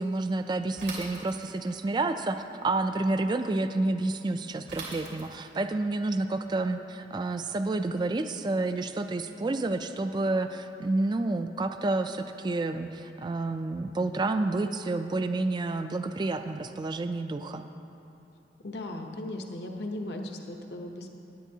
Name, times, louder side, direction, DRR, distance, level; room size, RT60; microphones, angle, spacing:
voice 1, 0.0-17.6, right 2 dB, 25° right, 8 dB, 0.3 m, -29 dB
Bicycle / Mechanisms, 0.8-1.8 4.7-5.6, right 3 dB, 85° right, 2.7 m, -41 dB
voice 2, 18.6-21.1, left 1 dB, 70° left, 2 dB, 0.8 m, -37 dB
17.0 x 10.0 x 2.8 m, 2.9 s
head